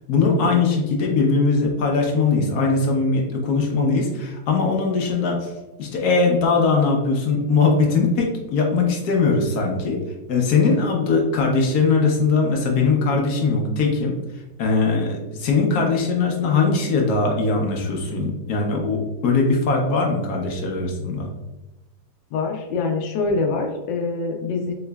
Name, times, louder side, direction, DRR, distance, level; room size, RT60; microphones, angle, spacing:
voice 1, 0.1-5.5 5.8-10.0 10.3-14.2 14.6-21.3, left 4 dB, 65° left, 1 dB, 1.1 m, -20 dB
voice 2, 22.3-24.7, left 3 dB, 85° left, 2 dB, 1.3 m, -24 dB
4.8 x 3.0 x 2.2 m, 1.0 s
omnidirectional pair, 2.0 m